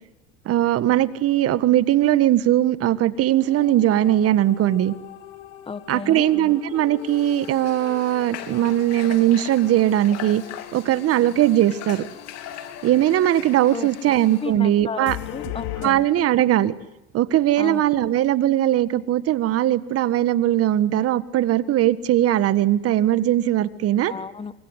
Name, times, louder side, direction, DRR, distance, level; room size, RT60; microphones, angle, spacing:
voice 1, 0.4-4.9 5.9-10.4 10.7-12.1 12.8-15.2 15.8-16.7 17.1-24.1, right 13 dB, 50° right, 14 dB, 1.7 m, -20 dB
sound 1, 3.1-15.9, left 14 dB, 75° left, 2.6 m, -40 dB
voice 2, 5.6-6.3 13.7-14.1 14.4-16.1 17.6-17.8 24.1-24.5, left 5 dB, 20° left, 14 dB, 1.5 m, -33 dB
Water / Water tap faucet, 7.0-14.5, left 10 dB, 55° left, 3.3 m, -40 dB
26.5 x 24.5 x 8.2 m, 0.95 s
supercardioid pair, 100°, 30 cm